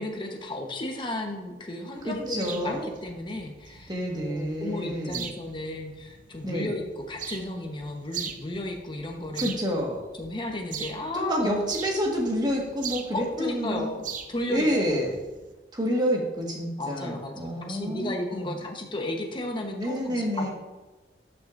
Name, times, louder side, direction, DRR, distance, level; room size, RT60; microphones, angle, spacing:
voice 1, 0.0-3.9 4.3-9.5 10.2-11.7 13.1-15.1 16.0-16.1 16.8-20.5, left 1 dB, 30° left, 2 dB, 1.0 m, -34 dB
sound 1, 2.0-15.5, right 7 dB, 50° right, 0.6 m, -41 dB
voice 2, 2.1-2.8 3.9-5.3 6.4-6.7 9.4-10.0 11.1-13.9 14.5-15.2 15.7-18.6 19.7-20.5, equal, 25° right, -2 dB, 1.6 m, -28 dB
12.0 x 6.1 x 2.6 m, 1.2 s
head